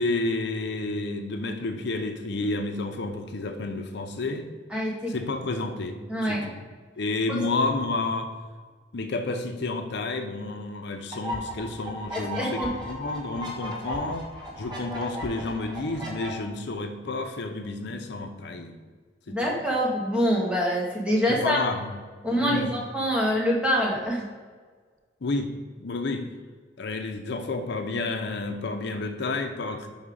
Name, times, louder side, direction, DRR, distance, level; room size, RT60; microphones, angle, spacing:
voice 1, 0.0-4.5 5.1-6.6 7.0-8.3 8.9-14.2 14.6-18.7 19.3-19.6 21.3-21.9 22.3-22.7 25.2-25.5 25.8-26.2 26.8-29.9, left 3 dB, 65° left, 6 dB, 0.6 m, -30 dB
voice 2, 4.7-5.1 6.1-6.4 7.3-7.4 12.1-12.7 19.3-21.6 22.2-24.3, equal, 5° right, -3 dB, 1.5 m, -25 dB
sound 1, 11.1-16.3, equal, 25° right, 1.6 m, -36 dB
5.5 x 5.5 x 4.9 m, 1.5 s
head